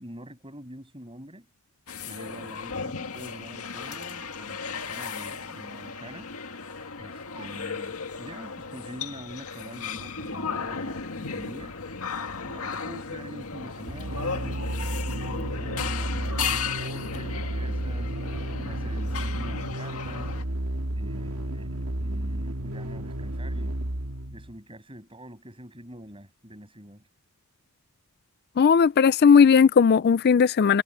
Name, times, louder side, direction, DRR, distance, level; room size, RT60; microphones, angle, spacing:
voice 1, 0.0-1.5 2.1-6.3 7.0-11.8 12.4-18.1 18.6-20.4 20.9-23.8 24.3-27.1, equal, 25° right, 7.0 m, -45 dB
sound 1, 1.9-20.4, left 5 dB, 75° left, 2.0 m, -35 dB
sound 2, 13.9-24.6, right 1 dB, 80° right, 1.9 m, -32 dB
voice 2, 28.6-30.8, left 6 dB, 45° left, 0.3 m, -17 dB
head